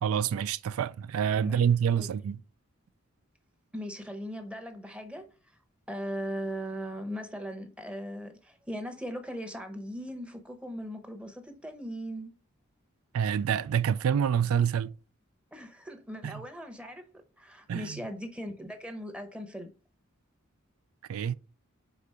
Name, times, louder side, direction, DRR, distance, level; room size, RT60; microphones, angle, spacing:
voice 1, 0.0-2.4 13.1-14.9 16.2-16.4 17.7-18.0 21.1-21.3, right 8 dB, 80° right, 0.3 m, -27 dB
voice 2, 1.4-2.1 3.7-5.3 5.9-12.3 15.5-17.1 17.4-19.7, equal, 5° right, 0.8 m, -39 dB
4.9 x 3.8 x 5.4 m
head